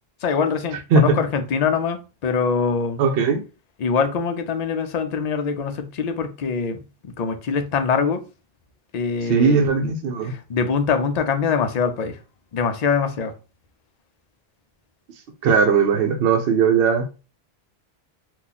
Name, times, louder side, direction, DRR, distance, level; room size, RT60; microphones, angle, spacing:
voice 1, 0.2-3.0 3.8-8.2 8.9-9.9 10.2-12.2 12.5-13.3, left 5 dB, 50° left, 0.5 m, -23 dB
voice 2, 3.0-3.4 9.2-10.4 15.4-17.3, right 5 dB, 70° right, 0.8 m, -19 dB
2.8 x 2.4 x 3.9 m
omnidirectional pair, 1.1 m